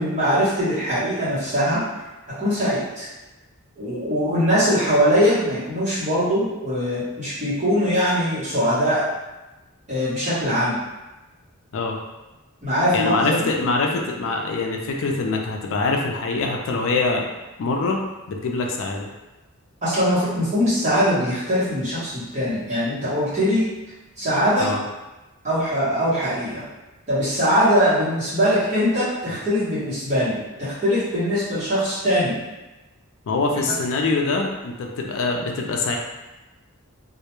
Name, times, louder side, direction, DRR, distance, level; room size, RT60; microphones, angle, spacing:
voice 1, 0.0-1.8 2.4-3.1 3.8-9.0 9.9-10.8 12.6-13.4 19.8-23.7 24.2-24.7 25.4-26.7 27.1-32.4 33.5-33.7, equal, 35° right, -12 dB, 0.9 m, -21 dB
voice 2, 12.9-17.3 17.6-19.1 24.6-24.8 33.3-36.0, left 3 dB, 65° left, 1 dB, 0.4 m, -24 dB
2.2 x 2.1 x 2.9 m, 1.1 s
head